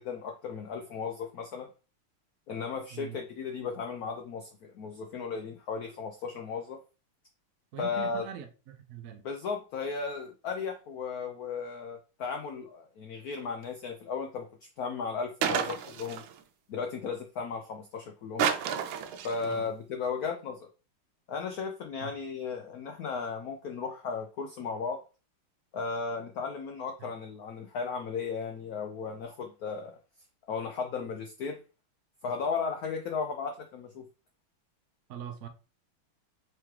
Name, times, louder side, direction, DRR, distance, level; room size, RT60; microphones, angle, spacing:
voice 1, 0.0-1.7 2.5-6.8 7.8-8.2 9.2-14.5 14.8-16.2 16.7-18.5 19.2-20.7 21.3-25.0 25.7-30.0 30.5-31.6 32.2-34.1, left 5 dB, 85° left, 0.8 m, -35 dB
voice 2, 7.7-9.2 19.4-19.7 22.0-22.1 27.0-27.1 35.1-35.5, right 9 dB, 70° right, 0.8 m, -42 dB
sound 1, 15.4-16.4 18.4-19.6, right 8 dB, 90° right, 1.5 m, -30 dB
4.8 x 3.6 x 3.0 m
omnidirectional pair, 2.2 m